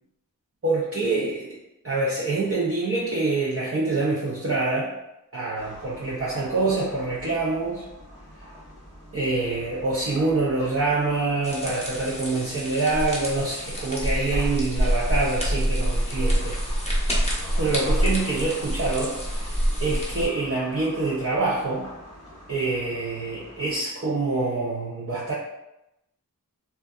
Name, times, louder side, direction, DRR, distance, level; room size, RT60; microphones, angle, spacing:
voice 1, 0.6-1.6 1.8-4.9 5.3-7.8 9.1-16.6 17.6-19.5 19.8-21.9 22.5-25.3, right 3 dB, 40° right, -6 dB, 0.5 m, -26 dB
sound 1, 5.6-23.8, equal, 20° right, 1.0 m, -44 dB
sound 2, 11.4-20.3, equal, 20° left, 0.7 m, -26 dB
2.5 x 2.3 x 2.2 m, 0.89 s
wide cardioid pair, 40°, 35 cm